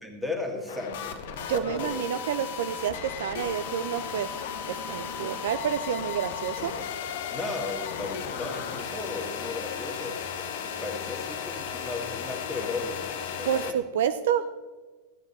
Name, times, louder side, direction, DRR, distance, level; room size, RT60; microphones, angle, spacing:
voice 1, 0.0-1.2 1.5-2.0 7.3-10.2 10.6-13.8, left 3 dB, 5° right, 3 dB, 2.0 m, -35 dB
sound 1, 0.7-13.7, left 7 dB, 55° left, 1.0 m, -35 dB
voice 2, 1.5-2.9 3.2-4.3 4.7-6.7 13.4-14.4, right 9 dB, 55° right, 11 dB, 0.4 m, -29 dB
13.5 x 9.4 x 4.3 m, 1.3 s
figure-of-eight pair, 90°, 0 cm